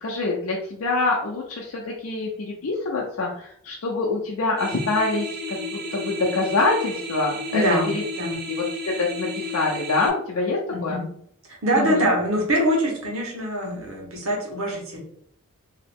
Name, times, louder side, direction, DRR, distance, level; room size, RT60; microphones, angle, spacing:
voice 1, 0.0-8.0 8.5-11.0 11.8-12.1, left 3 dB, 70° left, -2 dB, 0.5 m, -25 dB
sound 1, 4.6-10.1, left 1 dB, 45° right, 0.6 m, -32 dB
voice 2, 7.5-8.4 10.7-11.1 11.6-15.0, equal, 70° right, -1 dB, 1.2 m, -24 dB
2.9 x 2.8 x 3.4 m, 0.69 s
head